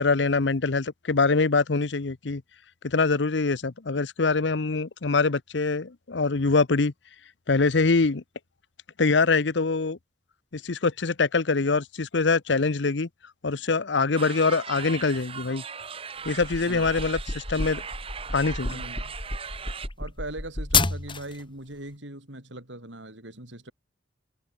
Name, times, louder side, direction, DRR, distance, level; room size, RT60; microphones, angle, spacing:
voice 1, 0.0-2.4 2.8-6.9 7.5-8.2 9.0-10.0 10.5-13.1 13.4-15.6 16.2-17.8 18.3-18.8, left 4 dB, 75° left, 0.8 m, -24 dB
sound 1, 14.2-19.9, right 6 dB, 30° right, 1.1 m, -39 dB
sound 2, 16.2-21.4, left 4 dB, 25° left, 2.0 m, -30 dB
voice 2, 18.7-19.1 20.0-23.7, right 1 dB, 85° right, 6.6 m, -40 dB
open air
head